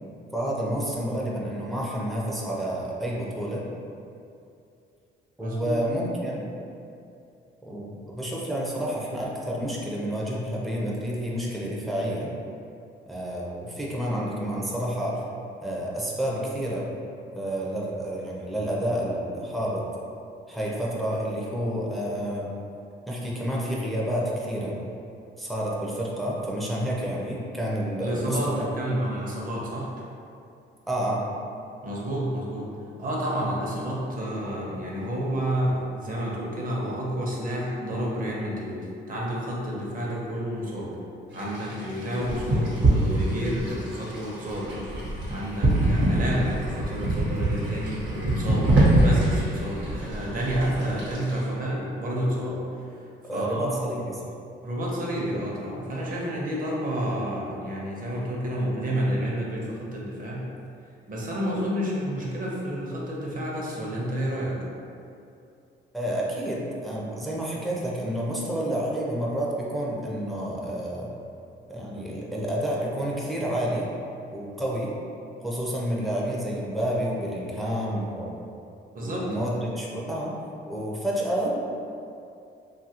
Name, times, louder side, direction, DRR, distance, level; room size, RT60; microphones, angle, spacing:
voice 1, 0.3-3.6 5.4-6.4 7.6-12.3 13.1-15.2 15.6-16.9 17.4-19.8 20.5-22.5 23.1-24.8 25.4-28.7 30.9-31.2 42.2-42.3 53.3-54.3 65.9-71.1 71.7-73.9 74.3-74.9 75.4-78.3 79.0-80.3 80.7-81.6, equal, ahead, -5 dB, 0.5 m, -29 dB
voice 2, 5.4-5.8 28.0-29.9 31.8-32.7 33.0-38.8 39.1-40.9 41.3-44.7 45.3-52.8 53.3-53.8 54.6-60.4 61.1-64.6 78.9-79.3, equal, 45° right, -5 dB, 0.8 m, -30 dB
sound 1, 41.3-51.4, right 1 dB, 70° right, 1.0 m, -25 dB
2.7 x 2.4 x 2.8 m, 2.6 s
cardioid pair, 90°, 20 cm